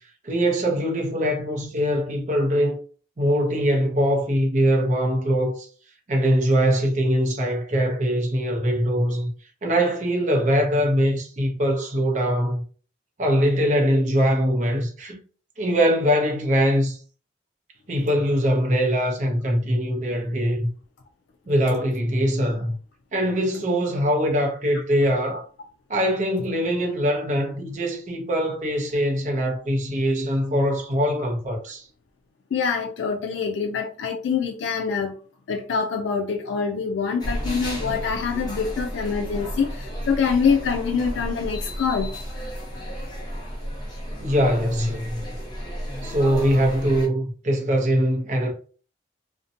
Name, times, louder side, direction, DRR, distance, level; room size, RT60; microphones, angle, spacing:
voice 1, 0.2-2.8 3.2-5.7 6.1-9.3 9.6-12.6 13.2-15.2 15.6-17.0 17.9-20.7 21.5-22.7 23.1-25.4 25.9-31.9 44.2-45.2 46.0-48.5, equal, 40° right, 0.6 m, -22 dB
voice 2, 32.5-35.1 35.5-42.1 43.3-43.4, left 6 dB, 85° left, 0.3 m, -25 dB
sound 1, 37.2-47.1, equal, 25° left, 0.6 m, -33 dB
2.6 x 2.1 x 2.6 m
head